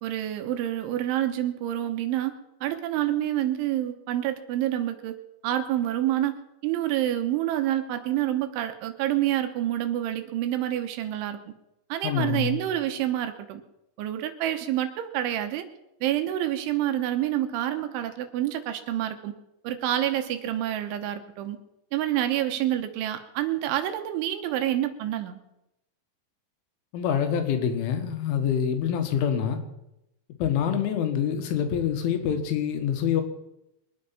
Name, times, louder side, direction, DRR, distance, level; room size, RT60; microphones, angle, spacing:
voice 1, 0.0-5.2 5.4-6.4 6.6-11.4 11.9-13.6 14.0-15.6 16.0-19.3 19.6-21.6 21.9-25.4, right 12 dB, 80° right, 7 dB, 3.3 m, -28 dB
voice 2, 12.0-12.6 26.9-29.6 30.4-33.2, left 8 dB, 80° left, 7 dB, 4.1 m, -26 dB
23.5 x 9.7 x 5.8 m, 0.88 s
omnidirectional pair, 5.7 m